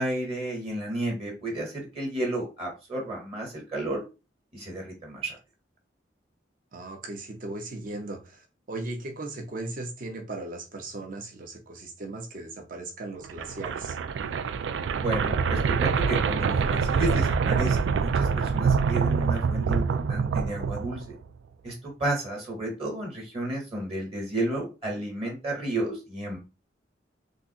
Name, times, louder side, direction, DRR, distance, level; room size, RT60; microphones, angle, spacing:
voice 1, 0.0-4.0 4.5-5.4 15.0-21.1 21.6-21.7 22.0-26.4, right 1 dB, 35° right, 1.1 m, -32 dB
voice 2, 6.7-14.0, right 2 dB, 50° right, 0.7 m, -37 dB
sound 1, 13.2-21.3, right 5 dB, 80° right, 0.3 m, -25 dB
3.6 x 2.5 x 2.8 m
head